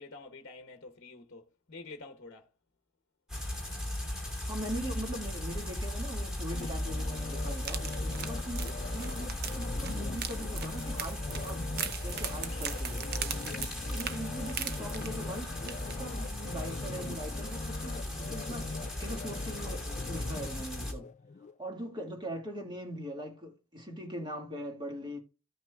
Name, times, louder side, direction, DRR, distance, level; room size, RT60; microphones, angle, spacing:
voice 1, 0.0-2.5, left 3 dB, 50° left, 1.0 m, -49 dB
sound 1, 3.3-20.9, left 1 dB, 5° right, 2.6 m, -37 dB
voice 2, 4.4-7.9 8.2-11.6 12.0-13.1 13.9-18.7 19.0-21.1 21.6-25.2, right 1 dB, 20° right, 1.9 m, -41 dB
sound 2, 6.5-21.6 22.0-22.1, left 4 dB, 35° left, 0.3 m, -42 dB
sound 3, 7.6-15.4 15.7-15.9 16.3-16.4, right 8 dB, 45° right, 0.7 m, -39 dB
15.0 x 5.9 x 2.3 m
head